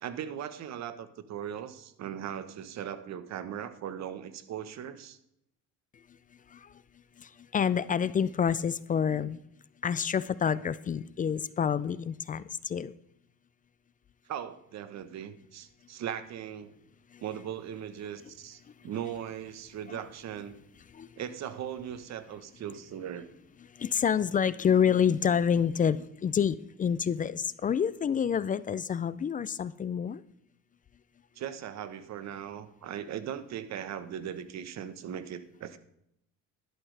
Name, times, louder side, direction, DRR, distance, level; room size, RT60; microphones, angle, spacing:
voice 1, 0.0-5.2 14.3-16.7 17.2-20.6 21.2-23.3 31.4-35.8, right 9 dB, 50° right, 12 dB, 1.1 m, -39 dB
voice 2, 7.5-9.4 9.8-12.4 12.7-12.9 21.0-21.1 23.8-30.2, left 7 dB, 25° left, 17 dB, 0.4 m, -27 dB
12.0 x 11.0 x 3.4 m, 0.78 s
cardioid pair, 120°, 34 cm